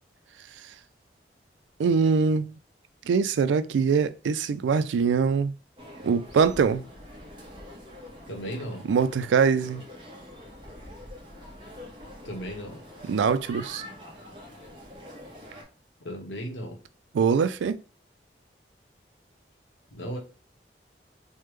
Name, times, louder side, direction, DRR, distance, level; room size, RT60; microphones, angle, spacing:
voice 1, 1.8-2.5 3.1-5.5 6.0-6.9 8.8-9.8 13.0-13.8 17.1-17.8, right 5 dB, 90° right, 0.3 m, -23 dB
sound 1, 5.8-15.6, equal, 30° right, 0.8 m, -45 dB
voice 2, 8.3-8.8 12.2-12.8 16.0-16.8 19.9-20.2, equal, 85° left, 0.9 m, -35 dB
3.4 x 2.1 x 3.1 m
head